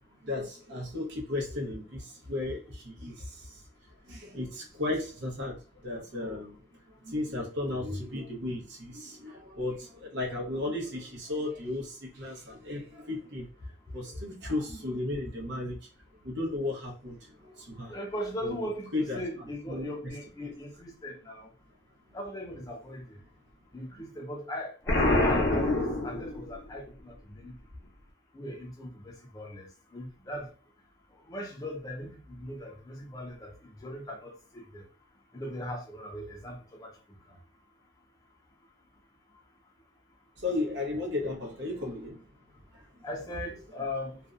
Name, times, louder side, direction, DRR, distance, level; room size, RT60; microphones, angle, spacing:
voice 1, 0.2-3.6 4.1-6.6 7.0-13.5 13.9-15.8 16.2-17.9 18.4-18.6 18.9-19.9 23.9-24.0 40.4-42.2 42.7-42.8, left 2 dB, 75° right, 0.8 m, -35 dB
voice 2, 17.9-21.5 22.1-23.2 23.7-27.5 28.3-30.5 31.1-34.9 35.3-37.4 43.0-44.2, left 1 dB, 20° left, 0.4 m, -39 dB
Explosion, 24.9-26.7, left 2 dB, 80° left, 0.7 m, -26 dB
2.5 x 2.1 x 2.4 m
head